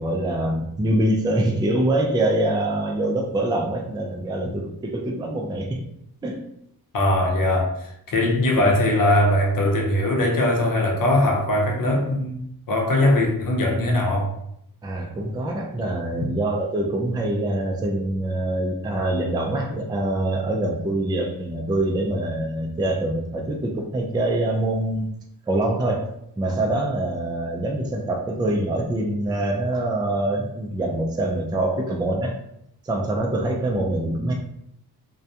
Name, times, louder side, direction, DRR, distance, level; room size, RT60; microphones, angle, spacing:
voice 1, 0.0-5.8 6.2-6.4 14.8-25.1 25.5-26.1 26.4-32.4 32.8-34.3, right 1 dB, 10° right, 1 dB, 0.3 m, -24 dB
voice 2, 6.9-14.3, left 1 dB, 60° left, 0 dB, 0.8 m, -21 dB
2.2 x 2.2 x 2.7 m, 0.74 s
cardioid pair, 80°, 38 cm